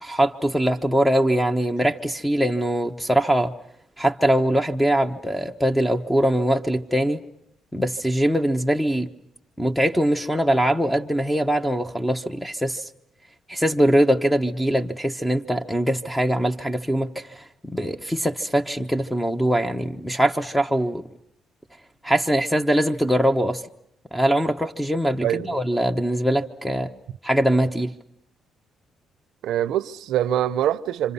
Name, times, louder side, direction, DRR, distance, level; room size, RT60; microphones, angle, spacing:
voice 1, 0.0-3.5 4.0-7.2 7.7-9.1 9.6-12.8 13.5-21.0 22.0-23.6 24.1-26.9 27.2-27.9, equal, 5° left, 1.1 m, -22 dB
voice 2, 25.2-25.6 29.4-31.1, right 11 dB, 80° right, 0.8 m, -24 dB
27.5 x 26.5 x 5.6 m
cardioid pair, 90°, 0 cm